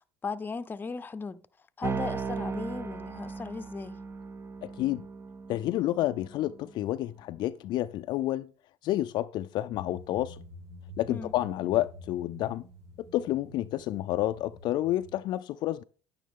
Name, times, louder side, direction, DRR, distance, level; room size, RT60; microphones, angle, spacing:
voice 1, 0.2-1.4 1.8-4.0 11.1-11.3, left 4 dB, 25° left, 0.7 m, -37 dB
sound 1, 1.8-6.7, right 5 dB, 30° right, 0.8 m, -37 dB
voice 2, 4.6-5.1 5.5-8.5 8.8-10.4 11.0-12.6 13.0-15.8, left 14 dB, 60° left, 0.4 m, -30 dB
sound 2, 9.7-15.2, equal, 65° right, 4.4 m, -48 dB
10.0 x 9.1 x 3.7 m
supercardioid pair, 85°, 9 cm